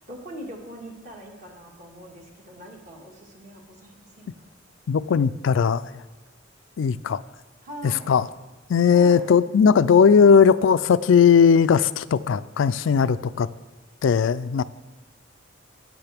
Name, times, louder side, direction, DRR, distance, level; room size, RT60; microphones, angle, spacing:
voice 1, 0.1-4.5 7.6-8.1 8.9-9.3, right 1 dB, 40° right, 0 dB, 1.7 m, -42 dB
voice 2, 4.9-6.0 6.8-7.2 7.8-8.3 8.7-13.5 14.0-14.6, left 6 dB, 75° left, 15 dB, 0.4 m, -18 dB
14.0 x 9.1 x 3.5 m, 1.2 s
head